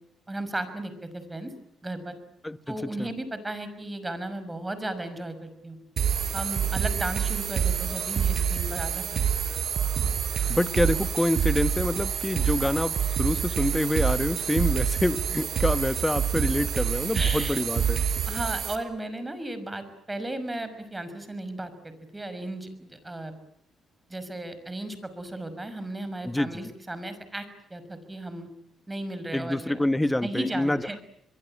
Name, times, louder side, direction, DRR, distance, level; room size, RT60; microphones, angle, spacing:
voice 1, 0.3-1.5 1.8-2.1 2.7-5.8 6.3-9.2 17.1-17.6 18.3-23.3 24.1-28.5 28.9-29.8 30.2-31.0, right 1 dB, 15° right, 5.9 m, -35 dB
voice 2, 2.4-3.1 10.5-18.1 26.2-26.6 29.3-30.8, left 1 dB, 10° left, 1.3 m, -27 dB
sound 1, 6.0-18.8, right 8 dB, 60° right, 4.8 m, -27 dB
25.0 x 23.0 x 8.8 m
cardioid pair, 80°, 0 cm